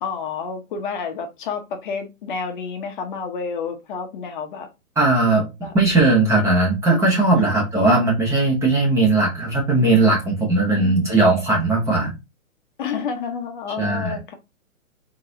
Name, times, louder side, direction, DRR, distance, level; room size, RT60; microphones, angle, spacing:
voice 1, 0.0-4.7 5.6-5.7 7.5-7.6 10.6-11.1 12.8-14.3, left 5 dB, 35° left, 0.8 m, -30 dB
voice 2, 5.0-5.5 5.7-12.1 13.8-14.2, right 2 dB, 5° right, 0.8 m, -18 dB
4.0 x 3.8 x 2.8 m
hypercardioid pair, 150°, 43 cm